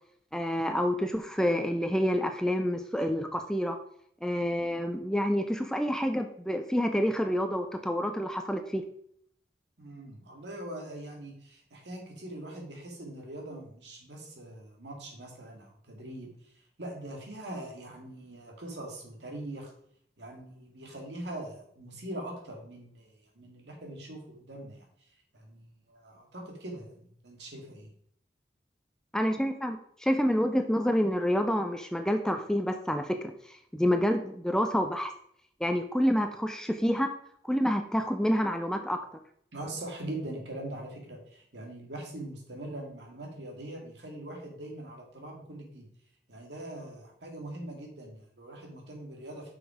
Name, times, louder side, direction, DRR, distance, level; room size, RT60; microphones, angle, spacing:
voice 1, 0.3-3.8 4.2-8.8 29.1-35.1 35.6-37.1 37.4-39.0, equal, 5° left, 7 dB, 0.5 m, -28 dB
voice 2, 9.8-16.3 16.8-19.7 20.2-24.9 25.3-27.9 39.5-45.9 46.3-49.5, right 1 dB, 85° right, 1 dB, 2.2 m, -42 dB
6.2 x 5.8 x 4.9 m, 0.66 s
head